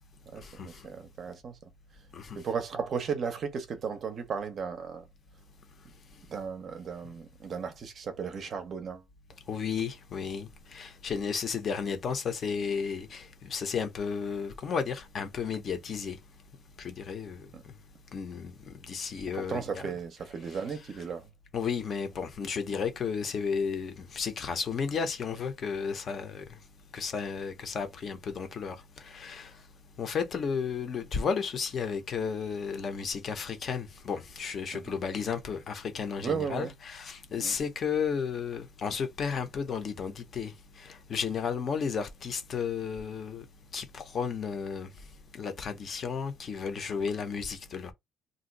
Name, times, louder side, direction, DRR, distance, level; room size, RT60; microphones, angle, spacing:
voice 1, 0.3-1.7 2.3-5.1 6.3-9.0 17.5-17.6 19.3-21.3 34.7-34.9 36.2-36.7 37.4-37.6, right 6 dB, 35° right, 0.6 m, -35 dB
voice 2, 9.5-10.5 10.7-13.2 13.5-16.2 16.8-17.4 18.1-18.5 18.9-19.6 21.5-26.4 26.9-28.7 29.1-29.5 30.0-40.5 41.1-43.4 43.7-44.9 45.3-47.9, left 6 dB, 35° left, 0.6 m, -33 dB
2.5 x 2.3 x 3.9 m
cardioid pair, 170°, 0 cm